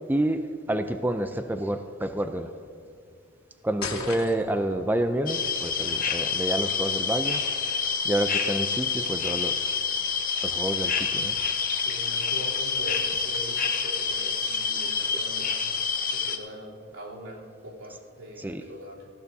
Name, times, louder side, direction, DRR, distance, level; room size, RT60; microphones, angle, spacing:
voice 1, 0.1-2.5 3.6-7.4 8.0-9.7 10.4-11.3 18.4-18.6, right 1 dB, 10° right, 8 dB, 0.4 m, -28 dB
sound 1, 3.8-4.8, left 5 dB, 85° left, 1.9 m, -35 dB
sound 2, 5.3-16.4, left 5 dB, 40° left, 1.0 m, -27 dB
voice 2, 11.8-19.1, equal, 85° right, -5 dB, 3.3 m, -41 dB
19.0 x 14.5 x 2.7 m, 2.3 s
head